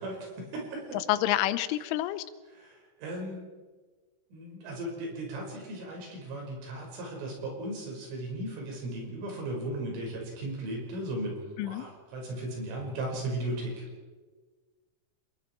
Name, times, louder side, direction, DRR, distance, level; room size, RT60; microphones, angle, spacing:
voice 1, 0.0-1.0 2.5-3.5 4.3-13.8, right 1 dB, 90° right, 0 dB, 8.0 m, -36 dB
voice 2, 1.1-2.2 11.6-11.8, left 14 dB, 90° left, 14 dB, 3.4 m, -28 dB
27.5 x 21.0 x 4.6 m, 1.4 s
omnidirectional pair, 5.5 m